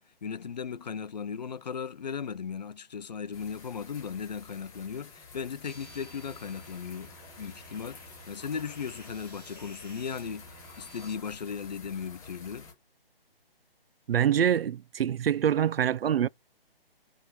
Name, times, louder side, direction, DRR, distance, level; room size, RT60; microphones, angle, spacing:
voice 1, 0.0-7.1 7.4-10.5 10.8-12.7, left 6 dB, 45° left, 0.6 m, -37 dB
sound 1, 3.3-12.7, left 5 dB, 10° left, 3.6 m, -50 dB
sound 2, 5.6-11.1, right 2 dB, 10° right, 3.9 m, -52 dB
voice 2, 14.1-16.3, right 9 dB, 75° right, 0.4 m, -25 dB
9.4 x 3.6 x 4.7 m
hypercardioid pair, 160°, 30 cm